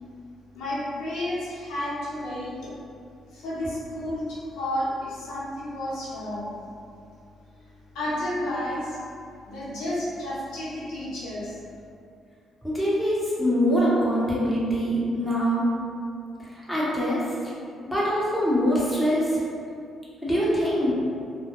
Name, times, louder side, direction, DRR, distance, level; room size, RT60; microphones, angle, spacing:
voice 1, 0.5-2.7 3.3-6.5 7.9-9.0 9.4-11.6, left 1 dB, 90° left, -9 dB, 0.8 m, -31 dB
voice 2, 12.6-15.7 16.7-17.2 17.9-19.4 20.2-20.9, equal, ahead, -8 dB, 0.7 m, -23 dB
2.1 x 2.1 x 2.9 m, 2.4 s
cardioid pair, 90°, 0 cm